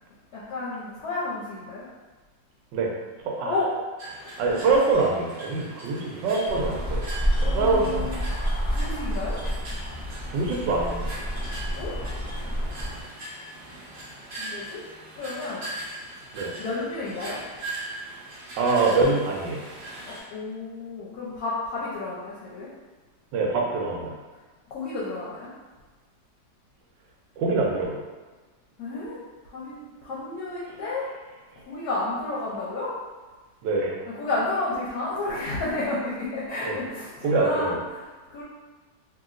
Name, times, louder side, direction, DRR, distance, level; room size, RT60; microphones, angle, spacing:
voice 1, 0.3-1.8 3.4-3.7 4.5-4.6 7.4-8.2 8.7-9.4 11.7-11.9 14.4-14.8 15.2-15.7 16.6-17.4 20.1-22.7 24.7-25.5 28.8-29.2 29.5-31.0 31.7-32.9 34.1-38.4, left 2 dB, 70° left, -7 dB, 1.0 m, -31 dB
voice 2, 3.2-3.6 4.4-7.0 7.4-8.2 10.3-11.1 16.3-16.5 18.6-19.6 23.3-24.1 27.4-28.0 33.6-34.0 36.6-36.8 37.2-37.8, right 3 dB, 80° right, -1 dB, 1.3 m, -24 dB
sound 1, 4.0-20.2, right 1 dB, 55° right, 0.7 m, -40 dB
sound 2, 6.4-13.0, equal, 25° left, 0.7 m, -29 dB
2.9 x 2.8 x 2.4 m, 1.3 s
omnidirectional pair, 2.0 m